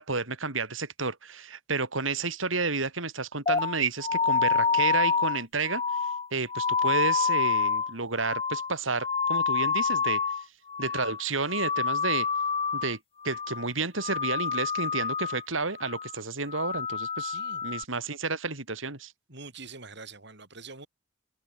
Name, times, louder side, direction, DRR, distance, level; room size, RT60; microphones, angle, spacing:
voice 1, 0.0-5.8 6.3-10.2 10.8-12.3 12.7-13.0 13.2-19.1, right 4 dB, 85° right, 4.3 m, -31 dB
sound 1, 3.5-10.4 10.7-11.2 11.5-12.9 13.2-13.7 14.0-15.4 15.8-16.1 16.5-17.8, left 5 dB, 30° left, 2.5 m, -28 dB
voice 2, 17.2-17.6 19.3-20.9, right 4 dB, 60° right, 7.7 m, -45 dB
head